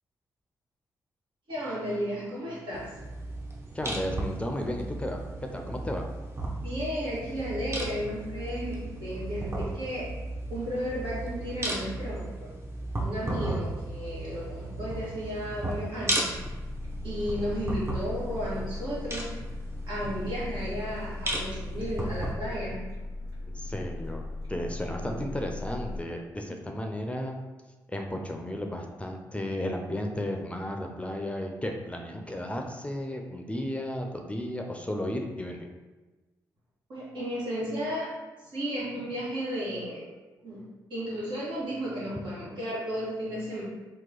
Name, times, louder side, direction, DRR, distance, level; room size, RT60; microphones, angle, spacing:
voice 1, 1.5-2.9 6.5-10.1 10.5-12.5 13.0-16.3 17.0-19.3 19.9-22.8 25.0-25.3 36.9-38.1 38.4-40.0 40.4-40.6 40.9-43.6, equal, 75° right, -8 dB, 1.4 m, -33 dB
sound 1, 2.7-22.3, right 2 dB, 30° right, 0.8 m, -35 dB
voice 2, 3.7-5.2 5.5-6.1 23.4-24.2 24.5-27.4 27.9-35.7, left 1 dB, 15° left, 2 dB, 0.5 m, -34 dB
sound 2, 16.3-26.0, left 2 dB, 50° right, 1.3 m, -38 dB
3.0 x 2.3 x 3.8 m, 1.2 s
supercardioid pair, 50°, 8 cm